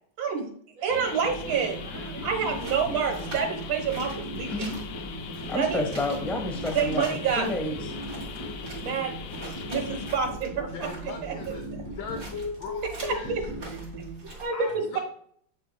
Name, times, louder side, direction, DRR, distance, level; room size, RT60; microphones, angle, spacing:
voice 1, 0.2-0.5 0.8-4.7 5.6-5.8 6.7-7.5 8.8-9.4 9.7-10.9 11.2-11.4 13.0-13.4 14.2-15.0, right 6 dB, 75° right, 4 dB, 2.0 m, -28 dB
Fan Oven Raw, 0.9-10.2, left 7 dB, 90° left, 0.7 m, -40 dB
sound 1, 1.2-14.1, right 1 dB, 15° left, 2.4 m, -38 dB
sound 2, 2.2-14.4, right 1 dB, 40° right, 2.9 m, -45 dB
voice 2, 5.5-7.0 7.4-7.8, left 1 dB, ahead, 2 dB, 0.5 m, -29 dB
voice 3, 10.7-11.7 11.9-13.3 14.5-15.0, left 6 dB, 75° left, 6 dB, 1.3 m, -40 dB
7.4 x 6.6 x 2.2 m, 0.62 s
omnidirectional pair, 2.1 m